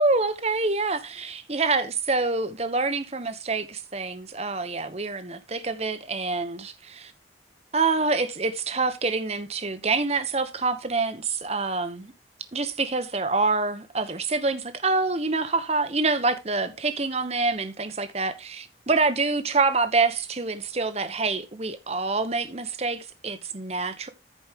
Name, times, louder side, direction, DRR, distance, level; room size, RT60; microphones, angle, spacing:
voice 1, 0.0-6.7 7.7-12.1 12.5-24.1, right 3 dB, 35° right, 1.1 m, -26 dB
14.0 x 5.3 x 3.6 m
head